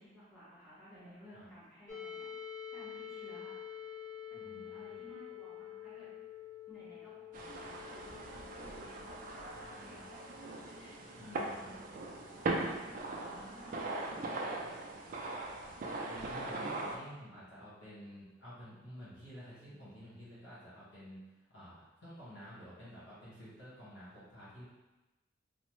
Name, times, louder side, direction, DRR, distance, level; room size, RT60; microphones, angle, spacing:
voice 1, 0.0-2.3 2.7-3.9 4.3-6.1 6.7-11.8 12.3-15.2, equal, ahead, -12 dB, 1.1 m, -56 dB
sound 1, 1.9-13.6, left 9 dB, 40° left, 0.5 m, -49 dB
voice 2, 4.3-5.0 9.6-10.1 11.2-11.7 16.1-24.6, equal, 65° left, -9 dB, 1.3 m, -51 dB
sound 2, 7.3-17.0, right 2 dB, 45° right, 0.3 m, -40 dB
2.9 x 2.0 x 3.0 m, 1.1 s
head